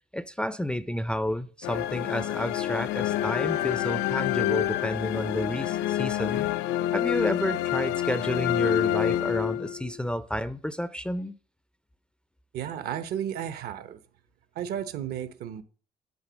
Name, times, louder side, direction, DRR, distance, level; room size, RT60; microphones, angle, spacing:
voice 1, 0.1-6.5 6.9-11.3, equal, 5° left, 0.4 m, -30 dB
sound 1, 1.6-10.0, left 13 dB, 85° left, 0.4 m, -27 dB
voice 2, 12.5-14.0 14.5-15.6, right 10 dB, 70° right, 0.8 m, -33 dB
9.7 x 3.8 x 6.1 m
cardioid pair, 110°, 17 cm